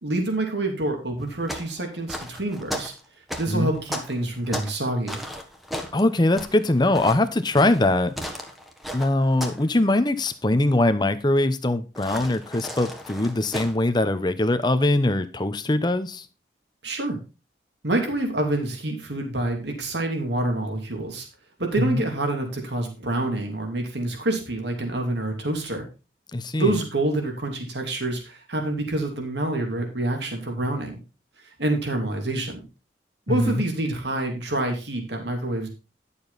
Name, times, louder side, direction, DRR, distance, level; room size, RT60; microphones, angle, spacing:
voice 1, 0.0-2.9 3.4-5.2 16.8-17.2 17.8-21.3 21.6-25.8 26.6-31.0 31.6-32.6 33.3-35.7, right 2 dB, 70° right, 2.8 m, -27 dB
sound 1, 1.2-4.8 5.1-9.7 9.9-10.3 11.9-13.7, equal, ahead, 1.2 m, -35 dB
voice 2, 5.9-8.1 8.9-16.3 21.8-22.0 26.3-26.8 33.3-33.6, left 2 dB, 25° left, 0.8 m, -22 dB
11.0 x 7.0 x 4.1 m
head